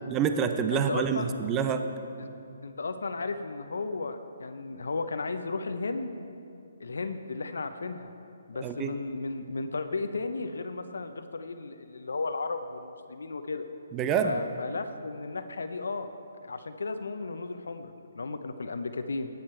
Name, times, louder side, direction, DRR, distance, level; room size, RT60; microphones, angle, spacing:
voice 1, 0.1-1.9 8.6-8.9 13.9-14.4, right 7 dB, 20° right, 8 dB, 0.5 m, -27 dB
voice 2, 0.7-1.3 2.2-2.3 2.6-6.1 6.8-8.1 8.5-13.6 14.2-16.1 16.4-19.3, left 3 dB, 80° left, 8 dB, 0.6 m, -34 dB
12.5 x 9.4 x 4.4 m, 2.6 s
hypercardioid pair, 150°, 0 cm